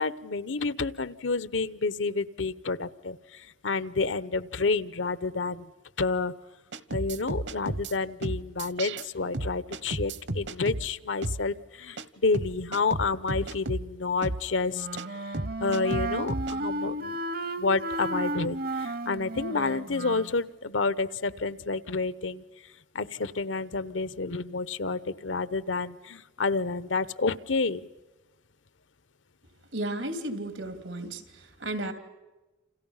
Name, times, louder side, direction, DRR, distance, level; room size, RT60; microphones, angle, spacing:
voice 1, 0.0-5.7 6.0-6.3 6.9-15.3 15.6-17.2 17.6-22.4 22.9-27.9, left 4 dB, 85° left, 16 dB, 1.0 m, -29 dB
sound 1, 6.7-7.9 8.2-9.1 9.3-10.9 11.2-11.4 12.0-12.1 12.3-13.9 14.2-14.4 15.0-15.1 15.3-16.5, right 2 dB, 70° right, 1.2 m, -33 dB
Wind instrument woodwind instrument, 14.7-20.4, right 1 dB, 50° right, 0.8 m, -33 dB
voice 2, 29.7-31.9, right 1 dB, 90° right, 8 dB, 3.1 m, -34 dB
29.5 x 27.5 x 5.7 m, 1.1 s
head